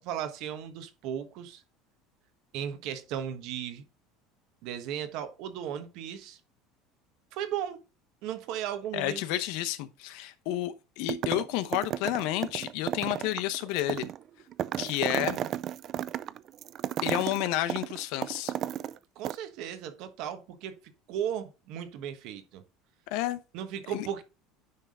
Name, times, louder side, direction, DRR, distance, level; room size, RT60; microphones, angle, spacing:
voice 1, 0.0-1.6 2.5-3.8 4.6-6.4 7.3-7.8 8.2-9.2 19.1-22.6 23.5-24.2, right 9 dB, 60° right, 1.2 m, -36 dB
voice 2, 8.9-14.1 14.8-15.4 17.0-18.5 23.1-23.4 23.9-24.1, left 14 dB, 70° left, 0.7 m, -30 dB
sound 1, 11.1-11.5 11.7-19.0 19.2-19.4, right 11 dB, 45° right, 0.3 m, -33 dB
9.6 x 3.5 x 3.6 m
cardioid pair, 135°, 0 cm